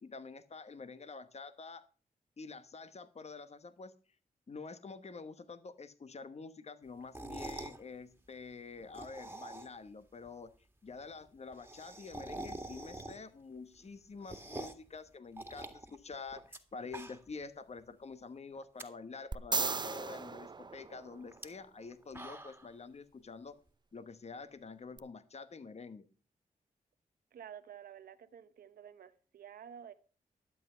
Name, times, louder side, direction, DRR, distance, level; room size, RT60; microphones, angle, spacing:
voice 1, 0.0-1.8 2.4-3.9 4.5-10.5 10.8-23.5 23.9-26.1, left 4 dB, 45° left, 1.1 m, -47 dB
sound 1, 7.0-7.8 8.8-9.9 10.2-10.3 10.5-10.6 10.9-11.0 11.2-13.4 13.8-14.9 15.4-16.6 16.8-17.4 17.8-17.9 18.6-18.8 19.3-19.4 19.6-20.2 21.3-21.5 21.9-22.7, right 1 dB, 15° right, 2.0 m, -46 dB
sound 2, 19.3-21.6 25.0-25.1, right 4 dB, 30° right, 0.6 m, -36 dB
voice 2, 27.3-29.9, right 9 dB, 80° right, 0.8 m, -51 dB
12.0 x 7.9 x 5.6 m
cardioid pair, 55°, 15 cm